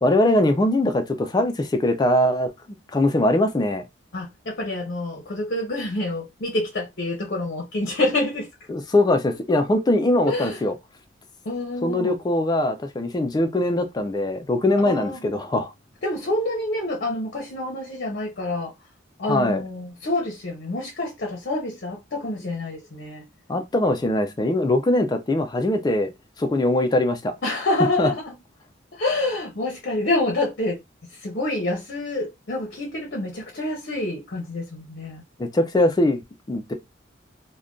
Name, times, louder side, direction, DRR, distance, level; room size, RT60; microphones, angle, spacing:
voice 1, 0.0-2.5 2.9-3.8 8.7-10.7 11.8-15.7 19.3-19.6 23.5-26.1 26.4-27.3 28.0-28.1 35.4-36.2 36.5-36.7, left 1 dB, 20° left, 0.3 m, -21 dB
voice 2, 4.1-8.5 10.3-10.6 11.4-12.1 14.8-15.2 16.0-18.7 19.2-23.2 27.4-28.3 28.9-30.8 31.1-35.2, left 2 dB, 55° left, 0.7 m, -27 dB
2.5 x 2.2 x 3.6 m
head